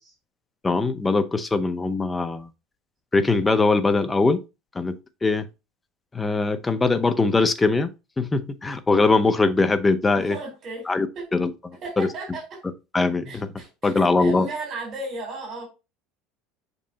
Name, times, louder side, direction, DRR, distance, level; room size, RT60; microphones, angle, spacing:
voice 1, 0.6-2.5 3.1-4.4 4.7-5.5 6.1-10.4 10.9-12.1 12.9-14.5, left 3 dB, 15° left, 0.7 m, -22 dB
voice 2, 10.1-10.9 11.2-11.3 11.8-12.6 13.3-15.7, right 2 dB, 35° right, 4.0 m, -35 dB
6.6 x 5.3 x 2.8 m
cardioid pair, 150°, 0 cm